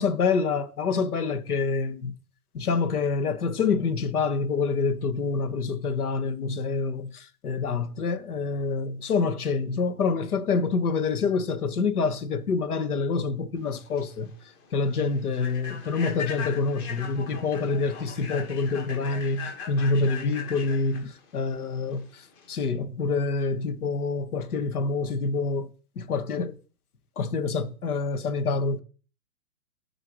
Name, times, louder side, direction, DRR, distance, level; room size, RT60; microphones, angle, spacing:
voice 1, 0.0-2.1 2.5-14.3 14.7-22.2 22.5-25.7 25.9-26.5 27.2-28.8, left 4 dB, 80° left, 1.5 m, -27 dB
Human voice / Train, 13.7-22.5, left 6 dB, 25° left, 1.9 m, -40 dB
8.1 x 4.9 x 6.2 m
hypercardioid pair, 150°, 44 cm